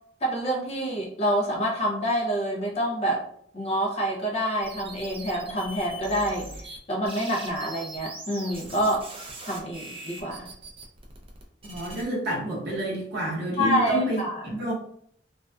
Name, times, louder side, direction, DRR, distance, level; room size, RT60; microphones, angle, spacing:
voice 1, 0.2-3.2 3.5-9.1 9.5-10.5 13.6-14.6, right 1 dB, 30° left, -1 dB, 0.5 m, -27 dB
sound 1, 4.6-6.8 7.0-12.0, right 1 dB, 30° right, 0.3 m, -41 dB
voice 2, 11.6-14.2 14.6-14.7, equal, 55° right, -4 dB, 0.8 m, -29 dB
2.5 x 2.3 x 2.2 m, 0.66 s
head